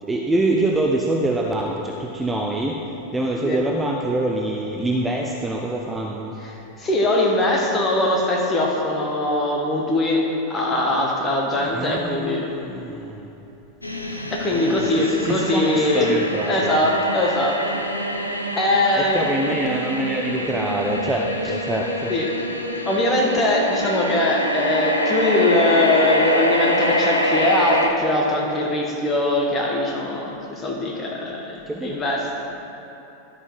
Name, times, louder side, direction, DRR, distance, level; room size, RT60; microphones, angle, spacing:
voice 1, 0.0-2.9 3.1-6.4 11.6-13.3 14.5-16.9 18.9-22.2 31.7-32.0, right 2 dB, 10° right, 1 dB, 0.5 m, -25 dB
voice 2, 6.8-12.5 14.3-16.1 16.5-17.8 18.6-19.3 22.1-22.3 22.9-32.3, left 1 dB, 20° left, -1 dB, 1.4 m, -21 dB
sound 1, 13.8-27.9, equal, 85° left, 0.7 m, -25 dB
11.5 x 4.9 x 4.7 m, 2.9 s
figure-of-eight pair, 90°, 0 cm